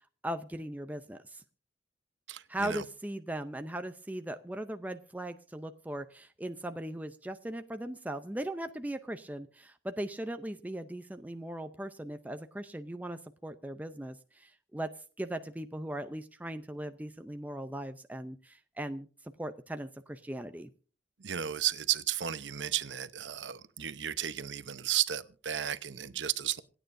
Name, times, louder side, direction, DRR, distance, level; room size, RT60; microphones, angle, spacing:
voice 1, 0.2-1.4 2.5-14.9 15.2-19.1 19.4-20.7, right 1 dB, 10° right, 0.5 m, -39 dB
voice 2, 2.3-2.8 21.2-26.6, right 11 dB, 90° right, 0.9 m, -33 dB
27.0 x 9.1 x 2.6 m
head